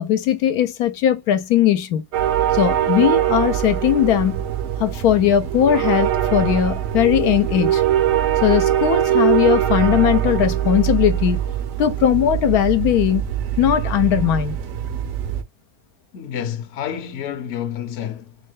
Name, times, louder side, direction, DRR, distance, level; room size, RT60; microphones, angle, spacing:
voice 1, 0.0-2.0 2.5-4.4 4.8-7.8 8.4-11.4 11.8-13.2 13.6-14.5, left 10 dB, 80° left, 1.1 m, -18 dB
sound 1, 2.1-15.4, right 11 dB, 65° right, 0.9 m, -22 dB
voice 2, 16.1-18.4, left 9 dB, 60° left, 0.9 m, -29 dB
4.4 x 2.1 x 3.1 m
omnidirectional pair, 1.6 m